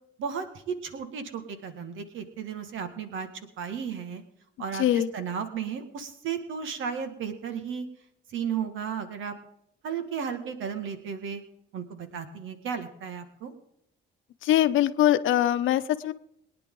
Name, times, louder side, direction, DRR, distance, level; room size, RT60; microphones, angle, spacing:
voice 1, 0.2-3.3 3.6-4.2 4.6-7.9 8.3-9.3 9.8-11.4 11.7-13.5, right 7 dB, 80° right, 8 dB, 2.0 m, -34 dB
voice 2, 4.8-5.1 14.4-16.1, left 12 dB, 80° left, 11 dB, 0.9 m, -22 dB
23.0 x 10.0 x 3.9 m, 0.74 s
cardioid pair, 90°, 20 cm